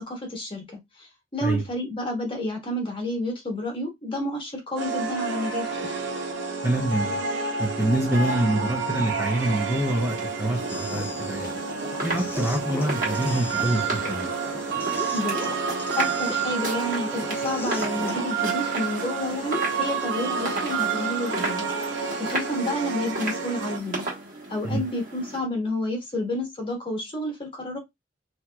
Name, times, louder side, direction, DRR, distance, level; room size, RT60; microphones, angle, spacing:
voice 1, 0.1-0.7 1.0-5.7 15.1-15.5 16.0-21.7 22.1-24.1 24.5-27.8, left 1 dB, 25° left, 1.3 m, -30 dB
sound 1, 4.8-23.8, right 5 dB, 75° right, 0.7 m, -29 dB
voice 2, 6.6-7.2 7.6-11.5 12.0-14.3 24.6-24.8, right 1 dB, 15° right, 0.7 m, -26 dB
sound 2, 9.4-25.4, right 2 dB, 45° right, 1.4 m, -36 dB
sound 3, 10.7-18.3, left 2 dB, 10° left, 0.3 m, -39 dB
3.5 x 2.9 x 2.2 m
head